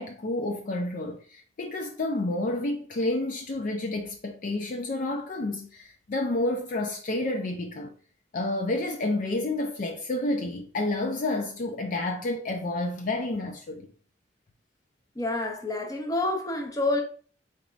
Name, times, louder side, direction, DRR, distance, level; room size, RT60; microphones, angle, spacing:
voice 1, 0.0-7.9 8.3-13.9, left 2 dB, 50° left, 0.4 m, -30 dB
voice 2, 15.1-17.0, left 2 dB, 20° left, 0.7 m, -28 dB
3.9 x 3.5 x 2.4 m
head